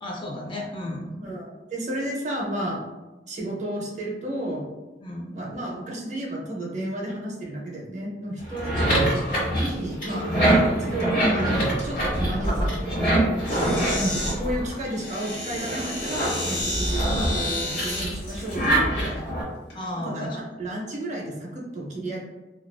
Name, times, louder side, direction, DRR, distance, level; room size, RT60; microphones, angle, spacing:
voice 1, 0.0-1.2 5.0-5.3 10.1-10.4 19.7-20.4, left 1 dB, 30° left, -1 dB, 0.4 m, -33 dB
voice 2, 1.2-2.8 3.3-4.6 5.3-8.8 9.5-10.3 10.8-13.1 13.9-19.4 20.0-22.2, right 1 dB, 45° right, -2 dB, 0.5 m, -32 dB
sound 1, 8.4-15.1 15.5-19.4, right 1 dB, 50° left, 1.0 m, -24 dB
sound 2, 11.0-11.5 11.8-12.2 13.4-14.4 14.9-18.0 18.7-18.8 19.6-19.9, left 1 dB, 70° left, 1.0 m, -31 dB
2.4 x 2.3 x 2.2 m, 1.1 s
head